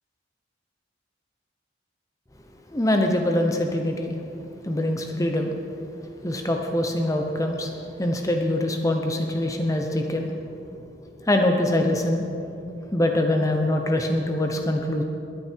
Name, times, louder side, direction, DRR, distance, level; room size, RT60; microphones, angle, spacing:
voice 1, 2.7-4.2 4.6-5.5 6.2-10.3 11.2-12.2 12.9-15.0, left 1 dB, 15° left, 3 dB, 0.9 m, -24 dB
20.5 x 9.4 x 4.6 m, 2.6 s
head